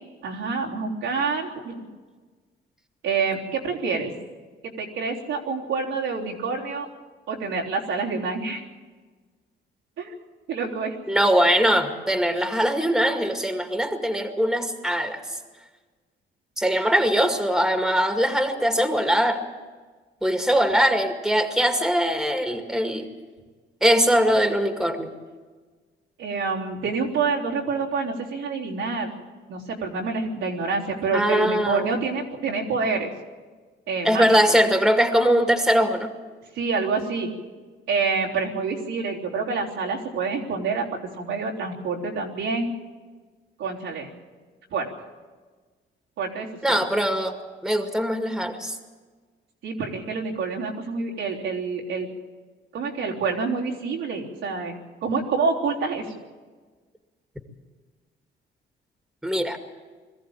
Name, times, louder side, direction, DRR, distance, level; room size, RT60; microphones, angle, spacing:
voice 1, 0.2-1.9 3.0-4.1 4.6-6.9 7.3-8.6 10.0-10.2 10.5-11.0 26.2-29.1 29.5-33.1 33.9-34.3 36.6-37.3 37.9-40.8 41.1-42.7 43.6-44.1 44.7-44.9 46.2-46.8 49.6-52.1 52.7-54.8 55.0-56.1, right 4 dB, 85° right, -3 dB, 3.5 m, -27 dB
voice 2, 11.1-15.4 16.6-19.4 20.2-23.1 23.8-25.1 31.1-31.9 34.0-36.1 46.6-47.4 47.6-48.8 59.2-59.6, equal, ahead, 5 dB, 2.2 m, -21 dB
22.0 x 14.5 x 8.9 m, 1.4 s
cardioid pair, 90°, 20 cm